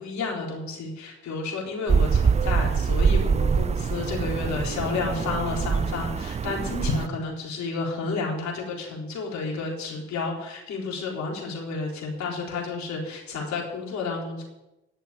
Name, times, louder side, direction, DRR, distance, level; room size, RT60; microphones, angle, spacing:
voice 1, 0.0-14.4, left 3 dB, 60° left, -2 dB, 4.1 m, -31 dB
sound 1, 1.9-7.1, right 6 dB, 20° right, 0.4 m, -24 dB
11.0 x 6.8 x 8.5 m, 0.99 s
hypercardioid pair, 55°, 32 cm